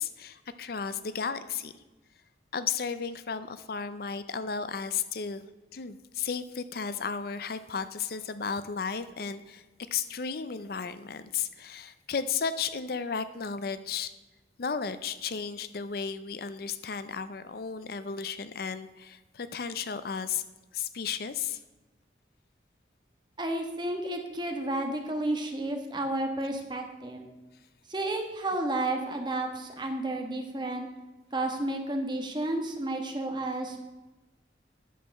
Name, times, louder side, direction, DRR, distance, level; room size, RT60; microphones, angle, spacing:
voice 1, 0.0-1.7 2.5-5.4 5.7-9.6 9.9-14.1 14.6-20.4 20.7-21.6, left 6 dB, 55° left, 13 dB, 0.5 m, -34 dB
voice 2, 23.4-27.3 27.9-30.9 31.3-33.8, right 1 dB, 25° right, 3 dB, 1.3 m, -31 dB
10.0 x 6.5 x 6.3 m, 1.1 s
head